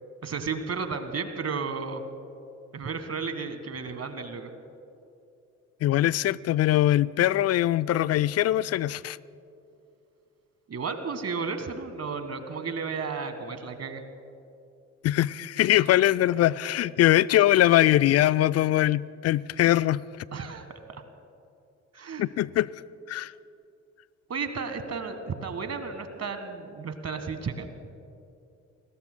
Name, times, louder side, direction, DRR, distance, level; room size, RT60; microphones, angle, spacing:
voice 1, 0.2-2.0 2.7-4.5 10.7-14.0 20.3-21.0 21.9-22.3 24.3-27.7, right 5 dB, 40° right, 1.7 m, -33 dB
voice 2, 5.8-9.2 15.0-20.0 22.2-22.7 23.1-23.3, left 13 dB, 45° left, 0.4 m, -22 dB
29.5 x 21.5 x 2.2 m
figure-of-eight pair, 40°, 38 cm